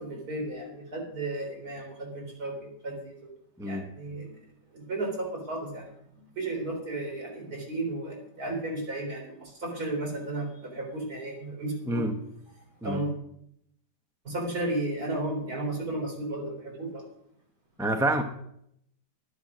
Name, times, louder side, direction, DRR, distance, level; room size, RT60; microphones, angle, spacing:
voice 1, 0.0-3.3 3.6-4.4 4.7-6.0 6.4-12.1 12.8-13.1 14.2-17.0, right 2 dB, 60° right, 4.2 m, -34 dB
voice 2, 17.8-18.2, right 1 dB, 5° right, 0.6 m, -27 dB
11.0 x 10.5 x 6.1 m
omnidirectional pair, 1.8 m